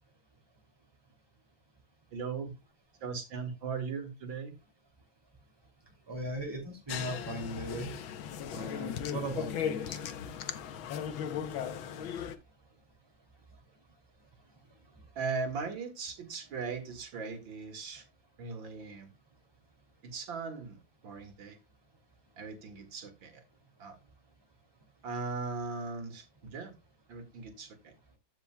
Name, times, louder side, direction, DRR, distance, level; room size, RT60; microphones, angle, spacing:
voice 1, 2.1-2.5 3.0-4.6 15.2-18.0 18.4-19.1 20.0-20.8 21.0-21.6 22.4-23.4 23.8-24.0 25.0-26.7 27.1-27.9, right 4 dB, 70° right, 2.7 m, -38 dB
voice 2, 6.1-8.0 8.5-10.0, right 1 dB, 10° right, 2.8 m, -38 dB
sound 1, 6.9-12.4, left 8 dB, 80° left, 1.6 m, -37 dB
15.0 x 5.8 x 2.2 m
omnidirectional pair, 2.2 m